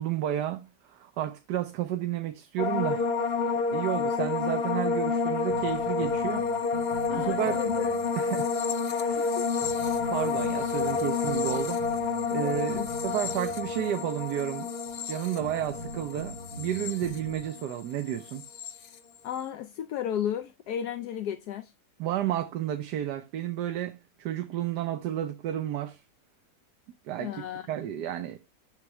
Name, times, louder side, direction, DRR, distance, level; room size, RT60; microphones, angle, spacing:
voice 1, 0.0-3.1 3.7-6.4 7.2-7.6 8.2-8.5 8.9-9.3 10.1-11.8 12.3-14.7 15.1-18.4 22.0-26.0 27.0-28.4, right 11 dB, 85° right, 1.3 m, -31 dB
sound 1, 2.6-17.8 18.1-18.7, left 5 dB, 50° left, 0.8 m, -29 dB
sound 2, 5.5-8.1 8.4-8.5 9.1-9.2 9.6-13.9 14.2-14.3 14.9-15.0 15.4-17.5, right 1 dB, 20° left, 5.2 m, -42 dB
voice 2, 7.1-7.9 9.2-9.5 12.3-12.9 19.2-21.7 27.2-27.7, left 10 dB, 75° left, 1.1 m, -34 dB
7.1 x 6.8 x 3.2 m
omnidirectional pair, 1.8 m